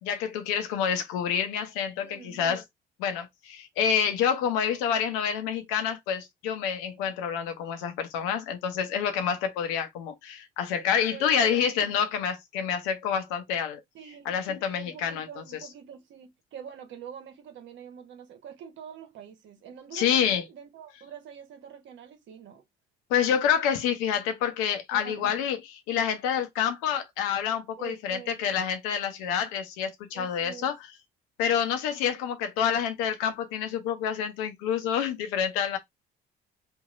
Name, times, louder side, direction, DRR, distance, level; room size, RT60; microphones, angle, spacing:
voice 1, 0.0-2.6 3.0-13.8 14.2-15.4 19.9-20.4 23.1-25.6 25.9-30.9 31.4-35.8, left 8 dB, 85° left, 0.8 m, -28 dB
voice 2, 2.0-2.4 11.1-11.7 13.9-22.6 24.9-25.4 27.8-28.5 30.1-30.7, right 8 dB, 65° right, 1.1 m, -45 dB
3.1 x 2.7 x 2.5 m
hypercardioid pair, 60°, 21 cm